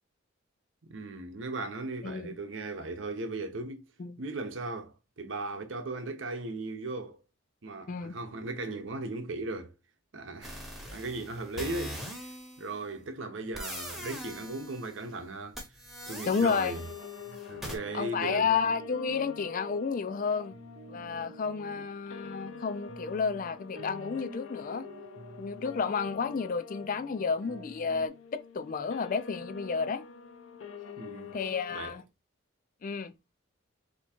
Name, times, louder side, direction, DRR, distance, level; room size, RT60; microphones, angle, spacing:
voice 1, 0.8-3.9 4.2-7.2 7.6-9.7 10.1-10.6 10.9-12.3 12.6-15.6 16.1-16.8 17.3-18.5 31.0-31.3 31.7-32.0, right 2 dB, 70° right, 0.8 m, -37 dB
voice 2, 2.0-2.4 4.0-4.2 7.9-8.1 16.3-16.8 17.9-20.5 20.9-24.9 25.4-30.0 31.3-32.0 32.8-33.1, left 5 dB, 40° left, 0.4 m, -31 dB
sound 1, 10.4-12.8 13.5-15.1 15.5-17.8, equal, ahead, 0.8 m, -42 dB
sound 2, 16.6-31.8, left 6 dB, 80° left, 0.6 m, -46 dB
sound 3, 17.5-28.1, right 4 dB, 50° right, 0.4 m, -51 dB
3.5 x 2.8 x 4.3 m
head